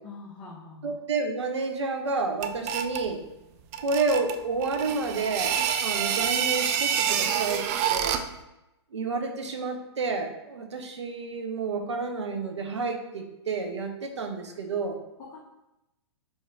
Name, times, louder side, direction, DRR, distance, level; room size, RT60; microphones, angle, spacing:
voice 1, 0.0-0.9 15.2-15.4, left 4 dB, 20° left, -5 dB, 0.8 m, -43 dB
voice 2, 0.8-3.2 3.8-7.6 7.9-8.2 8.9-15.0, right 3 dB, 75° right, 4 dB, 0.7 m, -30 dB
sound 1, 2.4-3.1 3.7-8.4, right 8 dB, 30° right, 0.3 m, -27 dB
4.4 x 2.8 x 3.7 m, 0.93 s
hypercardioid pair, 120°, 15 cm